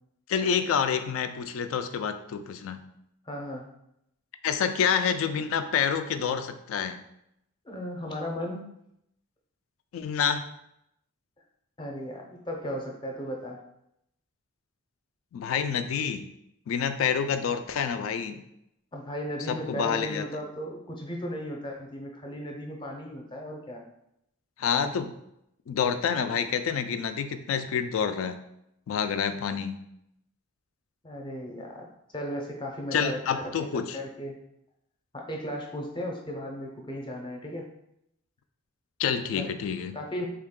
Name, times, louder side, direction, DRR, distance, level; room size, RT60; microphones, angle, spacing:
voice 1, 0.3-2.8 4.4-7.0 9.9-10.5 15.3-16.3 16.7-18.4 19.5-20.3 24.6-25.1 25.7-28.4 28.9-29.8 32.9-34.0 39.0-40.0, left 7 dB, 80° left, 9 dB, 0.3 m, -28 dB
voice 2, 3.2-3.7 7.6-8.6 11.8-13.6 18.9-23.8 31.0-31.8 32.1-33.5 33.9-34.4 35.1-37.7 39.4-39.5 39.9-40.3, equal, 25° left, 1 dB, 0.5 m, -35 dB
3.5 x 2.3 x 3.6 m, 0.79 s
head